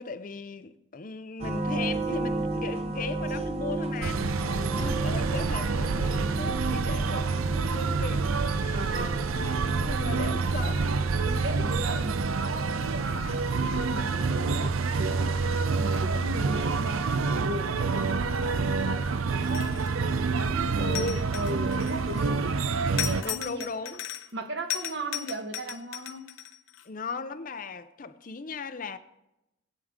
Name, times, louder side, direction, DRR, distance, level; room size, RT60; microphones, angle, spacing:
voice 1, 0.0-9.1 9.3-10.9 20.8-21.3 23.2-24.0 26.8-29.0, left 3 dB, 40° left, 0.5 m, -37 dB
sound 1, 1.4-15.5, right 2 dB, 30° right, 0.7 m, -35 dB
sound 2, 4.0-23.2, right 4 dB, 85° right, 0.5 m, -27 dB
voice 2, 4.5-4.9 8.7-9.3 10.1-10.3 11.3-15.3 15.8-19.8 20.4-23.7 24.3-26.3, right 1 dB, 55° right, 1.2 m, -37 dB
sound 3, 19.4-20.0 20.9-22.2 23.0-24.4 24.7-26.8, left 11 dB, 75° left, 0.9 m, -36 dB
19.5 x 8.5 x 3.7 m
head